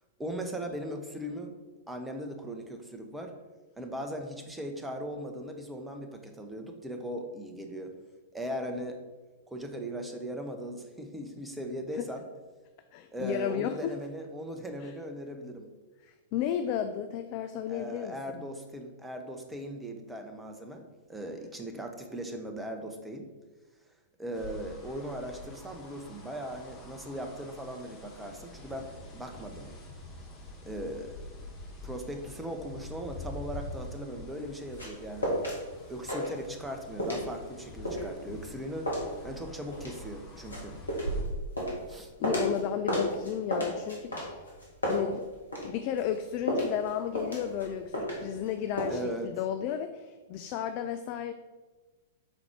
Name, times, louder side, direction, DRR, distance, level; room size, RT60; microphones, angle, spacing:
voice 1, 0.2-1.6 1.9-3.3 3.8-7.9 8.3-9.0 9.5-12.2 13.1-15.7 17.7-23.3 24.2-29.7 30.6-31.2 31.8-35.4 35.9-38.9 39.2-40.7 41.9-42.1 48.9-49.3, equal, 5° right, 4 dB, 0.8 m, -39 dB
voice 2, 12.9-13.9 14.8-14.9 16.0-18.4 42.2-44.5 44.9-45.2 45.6-51.3, left 9 dB, 40° left, 8 dB, 0.3 m, -33 dB
sound 1, 24.3-41.2, left 1 dB, 20° left, 1.5 m, -46 dB
sound 2, 34.3-35.6 35.9-36.7 37.0-42.6 42.9-45.7 46.0-48.5 48.8-49.0, equal, 80° left, 1.7 m, -32 dB
6.1 x 4.0 x 4.4 m, 1.2 s
figure-of-eight pair, 105°, 0 cm